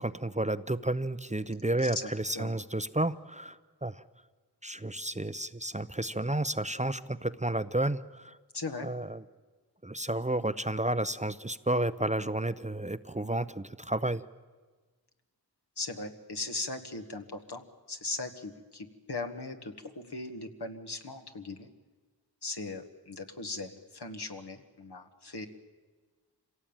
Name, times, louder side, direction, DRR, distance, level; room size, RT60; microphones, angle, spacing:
voice 1, 0.0-4.0 4.6-8.4 8.8-9.2 9.8-14.2, right 1 dB, 20° right, 13 dB, 0.6 m, -31 dB
voice 2, 1.6-2.6 8.5-8.9 15.8-17.6 17.9-21.7 22.4-25.5, left 3 dB, 75° left, 5 dB, 1.8 m, -39 dB
26.0 x 17.5 x 9.0 m, 1.4 s
wide cardioid pair, 40°, 40 cm